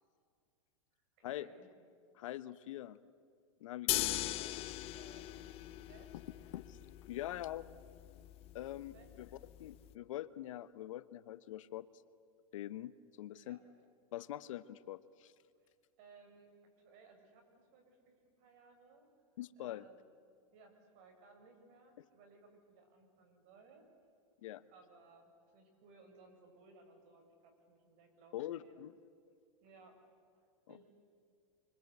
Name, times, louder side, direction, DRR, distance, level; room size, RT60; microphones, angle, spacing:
voice 1, 1.2-1.7 3.9-4.3 4.9-6.1 8.9-9.1 13.4-13.6 15.6-19.1 19.6-20.0 20.5-23.9 24.7-28.9 29.6-30.0 30.4-30.9, right 4 dB, 50° right, 4 dB, 7.2 m, -62 dB
voice 2, 2.1-3.0 3.6-4.3 6.5-6.8 7.1-7.7 8.5-9.3 9.6-11.9 12.5-13.6 14.1-15.3 19.4-19.8 24.4-24.6 28.3-28.9, left 13 dB, 70° left, 15 dB, 1.1 m, -44 dB
sound 1, 3.9-9.9, left 15 dB, 35° left, 1.0 m, -40 dB
28.0 x 25.5 x 8.3 m, 2.2 s
hypercardioid pair, 135°, 17 cm